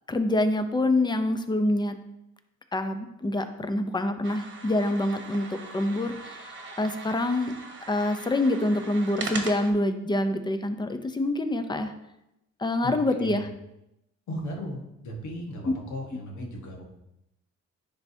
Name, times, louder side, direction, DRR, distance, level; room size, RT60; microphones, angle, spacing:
voice 1, 0.1-2.0 2.7-5.5 5.7-6.5 6.8-7.5 7.9-11.9 12.6-13.5 15.7-15.8, left 1 dB, 15° left, 8 dB, 0.6 m, -26 dB
sound 1, 4.2-9.7, right 3 dB, 40° right, 1.1 m, -40 dB
voice 2, 12.8-13.4 14.3-16.8, equal, 70° left, 1 dB, 1.4 m, -36 dB
10.0 x 3.5 x 2.8 m, 0.86 s
cardioid pair, 90°, 30 cm